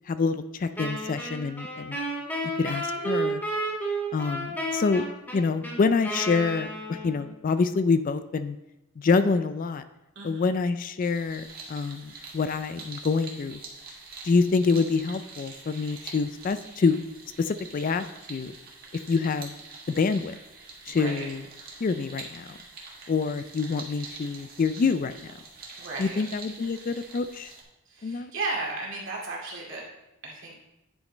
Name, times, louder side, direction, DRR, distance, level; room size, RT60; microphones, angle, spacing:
voice 1, 0.1-2.0 2.6-3.4 4.1-5.0 5.3-8.6 9.0-9.8 10.2-13.6 14.2-17.0 17.4-18.5 19.1-19.5 19.9-20.3 20.9-21.4 21.8-22.5 23.1-25.1 26.0-27.5 28.0-28.3, left 4 dB, 40° left, 11 dB, 0.3 m, -26 dB
Wind instrument woodwind instrument, 0.8-7.3, right 1 dB, 10° left, 1.8 m, -32 dB
voice 2, 10.2-10.5 20.8-21.3 25.8-26.2 27.9-29.8 30.2-30.6, right 3 dB, 60° right, -3 dB, 2.3 m, -34 dB
sound 1, 11.0-27.6, right 4 dB, 45° right, 1.6 m, -45 dB
9.7 x 5.1 x 4.0 m, 0.92 s
head